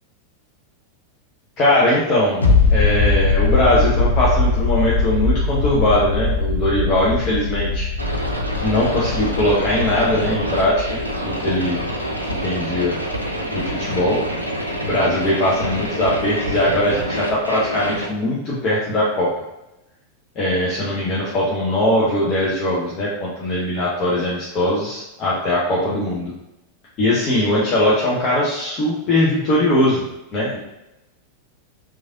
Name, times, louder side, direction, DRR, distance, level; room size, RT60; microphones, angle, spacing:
voice 1, 1.6-2.4 2.7-7.9 8.6-11.8 12.4-13.0 13.5-14.2 14.8-19.3 20.4-26.3 27.0-30.0 30.3-30.6, left 1 dB, 35° left, -6 dB, 0.6 m, -20 dB
sound 1, 2.4-13.8 14.0-14.1, left 3 dB, 75° left, 0.4 m, -21 dB
sound 2, 8.0-18.1, equal, 85° right, 0.4 m, -27 dB
3.1 x 2.4 x 2.6 m, 0.94 s
figure-of-eight pair, 90°, 0 cm